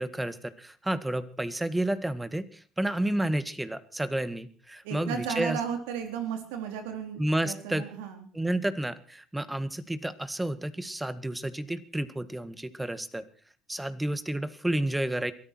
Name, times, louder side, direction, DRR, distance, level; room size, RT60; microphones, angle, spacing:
voice 1, 0.0-2.5 2.8-5.6 7.2-7.9 8.3-13.2 13.7-15.3, right 1 dB, 10° right, 14 dB, 1.8 m, -30 dB
voice 2, 4.8-8.3, right 7 dB, 90° right, 6 dB, 3.7 m, -34 dB
23.0 x 13.5 x 4.6 m, 0.41 s
supercardioid pair, 85°, 0 cm